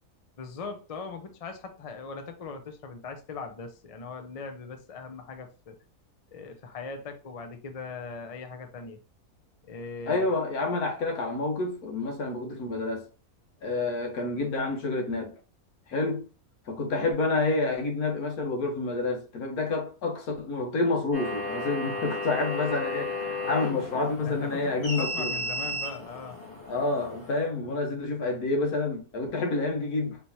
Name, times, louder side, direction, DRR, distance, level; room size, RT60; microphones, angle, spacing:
voice 1, 0.4-5.8 6.3-9.0 9.6-10.3 24.2-24.7 25.0-26.4, left 4 dB, 50° left, 0.4 m, -40 dB
voice 2, 10.1-13.0 13.6-15.3 15.9-16.2 16.7-25.3 26.7-30.2, left 3 dB, 80° left, 1.6 m, -28 dB
sound 1, 21.1-27.5, left 2 dB, 30° left, 2.0 m, -34 dB
4.4 x 3.3 x 2.8 m
omnidirectional pair, 1.6 m